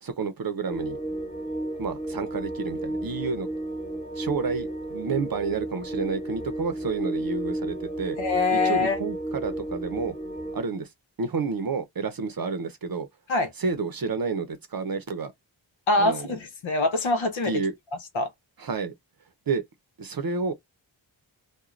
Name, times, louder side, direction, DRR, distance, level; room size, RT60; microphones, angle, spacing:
voice 1, 0.0-1.0 1.8-3.5 4.1-8.2 8.5-10.1 10.5-10.9 11.2-13.1 13.6-15.3 16.0-16.3 17.5-17.7 18.6-18.9 19.5-19.6 20.0-20.5, right 4 dB, 50° right, 0.6 m, -30 dB
sound 1, 0.6-10.6, right 1 dB, 15° left, 1.0 m, -33 dB
voice 2, 8.2-9.0 13.3-13.5 15.9-17.6 18.1-18.3, left 2 dB, 90° left, 0.9 m, -24 dB
2.4 x 2.2 x 3.1 m
cardioid pair, 60°, 46 cm